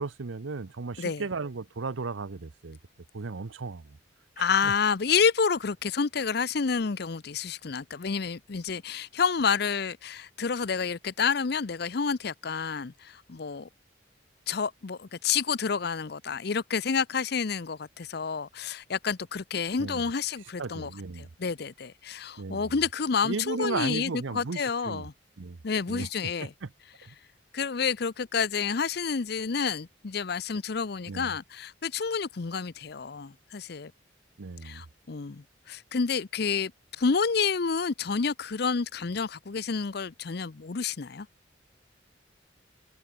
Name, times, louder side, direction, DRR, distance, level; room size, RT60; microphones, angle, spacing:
voice 1, 0.0-2.8 3.1-4.0 4.4-4.7 19.8-20.0 20.6-21.3 22.4-22.7 23.2-25.1 25.4-25.6 25.9-26.7 27.0-27.1 31.1-31.3 34.4-34.8, right 4 dB, 90° right, 0.7 m, -35 dB
voice 2, 4.4-13.7 14.5-20.9 21.2-25.1 25.6-26.5 27.5-33.9 34.6-36.7 37.0-41.3, left 5 dB, 55° left, 0.6 m, -29 dB
head